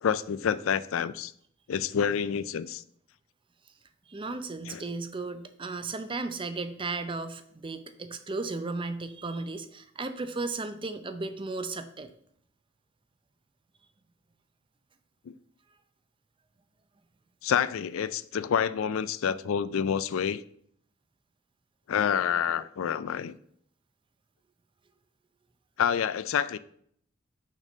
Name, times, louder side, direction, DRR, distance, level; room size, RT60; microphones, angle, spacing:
voice 1, 0.0-1.3 1.7-2.8 4.7-4.8 15.3-15.4 17.4-20.4 21.9-23.4 25.8-26.6, left 8 dB, 70° left, 0.4 m, -28 dB
voice 2, 4.1-12.1, right 3 dB, 25° right, 0.5 m, -35 dB
6.2 x 4.2 x 6.2 m
head